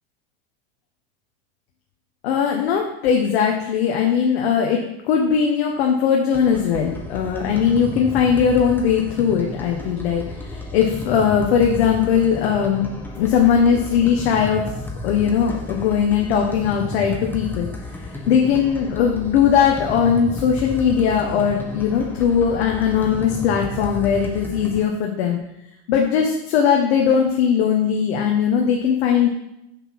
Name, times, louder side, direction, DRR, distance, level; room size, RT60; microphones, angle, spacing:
voice 1, 2.2-4.8 5.1-10.2 10.5-12.9 13.2-14.6 15.0-17.7 18.3-25.4 25.9-29.3, left 7 dB, 75° left, 1 dB, 1.3 m, -19 dB
sound 1, 6.3-24.8, left 2 dB, 5° left, 1.5 m, -33 dB
6.5 x 5.7 x 6.1 m, 0.86 s
hypercardioid pair, 105°, 31 cm